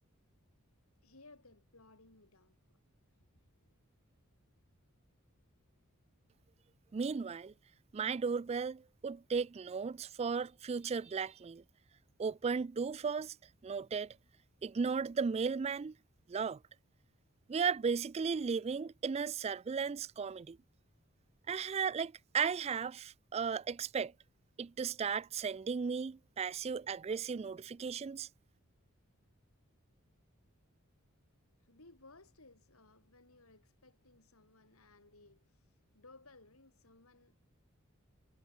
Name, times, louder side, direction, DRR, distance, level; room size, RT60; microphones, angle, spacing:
voice 1, 1.0-2.8 3.6-3.7 31.6-37.4, left 2 dB, 80° left, 4.8 m, -61 dB
voice 2, 6.9-7.5 7.9-11.6 12.2-13.3 13.6-14.2 14.6-15.9 16.3-16.6 17.5-20.6 21.5-24.1 24.6-28.3, right 5 dB, 30° right, 0.3 m, -35 dB
head